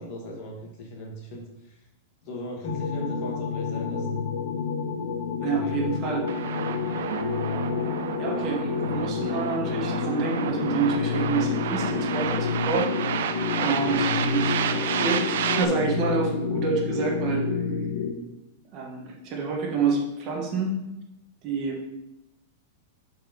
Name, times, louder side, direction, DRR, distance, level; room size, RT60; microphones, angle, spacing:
voice 1, 0.0-1.9 2.2-4.2 5.4-5.8 13.8-14.2, equal, 35° left, 0 dB, 1.7 m, -39 dB
sound 1, 2.6-18.1, left 5 dB, 75° left, 0.9 m, -29 dB
voice 2, 5.4-6.2 8.2-12.9 13.5-17.4 18.7-20.8 21.4-21.8, right 4 dB, 30° right, 0 dB, 1.3 m, -28 dB
sound 2, 6.3-15.6, right 8 dB, 65° right, 0.6 m, -31 dB
sound 3, 7.0-15.1, right 5 dB, 85° right, 1.8 m, -43 dB
7.6 x 4.6 x 5.2 m, 0.95 s
supercardioid pair, 175°, 0 cm